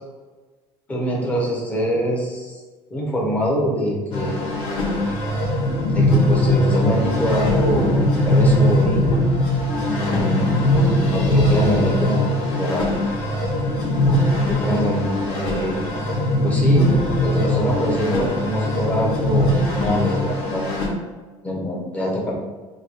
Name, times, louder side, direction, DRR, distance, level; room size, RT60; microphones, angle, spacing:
voice 1, 0.9-2.6 2.9-4.4 5.8-9.1 10.1-10.7 11.0-12.2 12.6-13.0 14.5-15.9 16.4-16.9 17.2-20.6 21.4-22.3, equal, 15° left, -2 dB, 0.8 m, -24 dB
sound 1, 4.1-20.9, left 1 dB, 65° left, 1.2 m, -20 dB
3.1 x 2.7 x 4.1 m, 1.3 s
cardioid pair, 165°, 10 cm